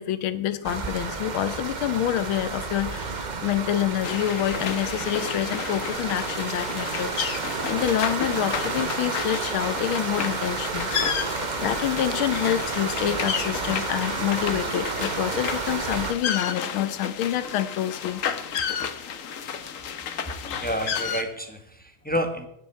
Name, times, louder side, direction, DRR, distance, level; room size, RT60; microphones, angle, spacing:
voice 1, 0.0-7.3 7.7-10.9 11.6-18.2, left 11 dB, 80° left, 13 dB, 1.7 m, -27 dB
sound 1, 0.6-16.1, right 4 dB, 50° right, 0.5 m, -31 dB
sound 2, 4.0-21.2, left 7 dB, 55° left, 1.0 m, -32 dB
voice 2, 20.5-22.5, equal, 5° left, 6 dB, 0.9 m, -29 dB
16.0 x 10.5 x 4.5 m, 0.77 s
omnidirectional pair, 2.3 m